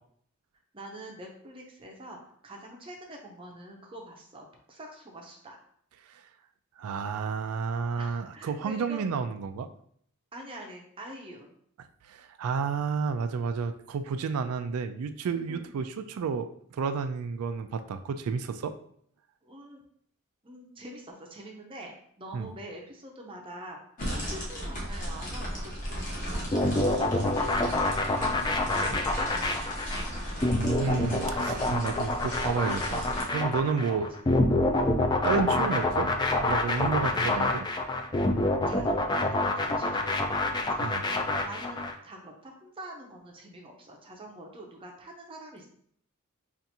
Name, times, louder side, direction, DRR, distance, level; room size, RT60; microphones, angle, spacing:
voice 1, 0.7-5.6 7.9-9.2 10.3-11.5 15.5-15.7 19.4-19.8 20.4-23.8 24.2-29.8 37.0-37.5 38.7-45.7, right 1 dB, 25° right, 0 dB, 0.6 m, -45 dB
voice 2, 6.8-9.7 12.1-18.7 22.3-22.5 30.5-34.1 35.2-36.1 36.4-37.7 40.8-41.0, right 5 dB, 90° right, 9 dB, 0.3 m, -31 dB
sound 1, 24.0-33.2, equal, 35° left, 1.2 m, -36 dB
sound 2, 26.5-41.9, left 2 dB, 20° left, 0.3 m, -27 dB
5.7 x 2.5 x 2.7 m, 0.64 s
head